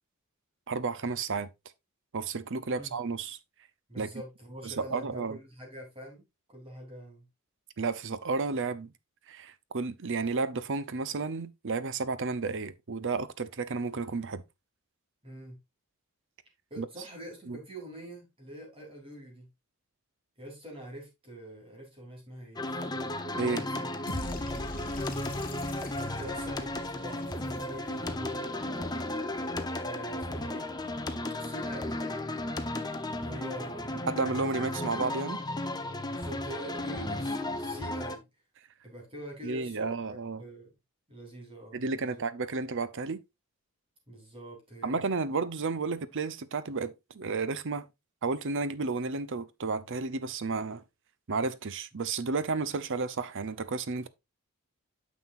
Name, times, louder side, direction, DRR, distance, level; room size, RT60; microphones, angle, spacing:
voice 1, 0.7-1.5 2.1-3.4 4.0-4.1 4.6-5.4 7.8-8.9 9.3-14.4 16.8-16.9 17.5-17.6 23.3-23.6 34.1-35.4 39.4-40.4 41.7-43.2 44.8-47.8 48.2-50.8 51.3-54.1, right 4 dB, 60° right, 0.7 m, -32 dB
voice 2, 3.9-7.3 15.2-15.6 16.7-19.5 20.4-22.8 23.5-23.9 24.7-25.6 26.2-29.1 29.8-30.7 31.4-32.4 33.2-34.1 36.1-38.3 38.8-40.7 41.1-42.2 44.1-45.0, right 1 dB, 25° right, 3.6 m, -45 dB
sound 1, 22.6-38.2, left 1 dB, 20° left, 0.9 m, -34 dB
sound 2, 24.1-28.2, left 1 dB, 40° left, 1.7 m, -41 dB
sound 3, 24.8-35.4, right 1 dB, 5° right, 4.2 m, -59 dB
9.4 x 6.4 x 2.5 m
head